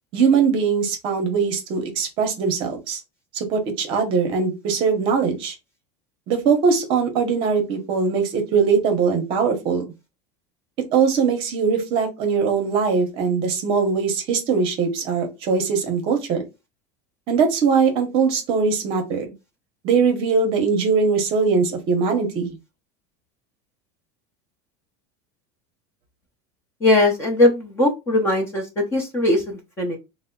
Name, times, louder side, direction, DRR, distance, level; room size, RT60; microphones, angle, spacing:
voice 1, 0.1-3.0 3.3-5.5 6.3-9.8 10.9-16.4 17.3-19.3 19.8-22.6, right 5 dB, 40° right, 0.9 m, -21 dB
voice 2, 26.8-30.0, left 2 dB, 15° left, 0.8 m, -20 dB
3.3 x 2.1 x 3.7 m
cardioid pair, 175°, 14 cm